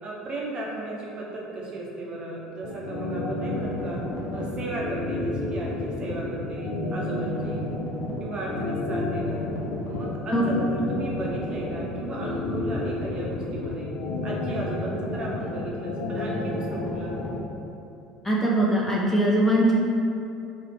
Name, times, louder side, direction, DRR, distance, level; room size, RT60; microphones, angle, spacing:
voice 1, 0.0-4.0 4.3-7.7 8.2-9.5 9.8-13.9 14.2-17.2, right 2 dB, 35° right, -4 dB, 0.7 m, -35 dB
sound 1, 2.6-17.4, left 2 dB, 55° left, 0.5 m, -30 dB
voice 2, 18.2-19.7, right 1 dB, 10° left, -5 dB, 0.5 m, -21 dB
3.0 x 2.4 x 4.3 m, 2.8 s
figure-of-eight pair, 65°, 3 cm